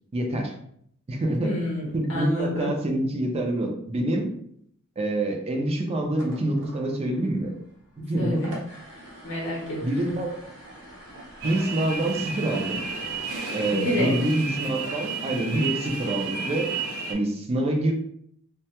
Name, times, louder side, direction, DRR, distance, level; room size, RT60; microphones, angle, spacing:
voice 1, 0.1-0.5 1.1-1.5 1.9-4.3 5.0-7.5 8.1-8.4 9.8-10.3 11.4-12.8 13.5-16.7 17.1-17.9, right 1 dB, 30° right, 2 dB, 0.4 m, -26 dB
voice 2, 1.4-2.7 8.2-8.5 9.2-10.1 13.7-14.1, left 1 dB, 55° left, -3 dB, 0.7 m, -28 dB
sound 1, 6.0-13.4, right 1 dB, 60° right, 0.8 m, -46 dB
sound 2, 11.4-17.1, right 4 dB, 85° right, 0.5 m, -32 dB
2.2 x 2.0 x 2.8 m, 0.69 s
head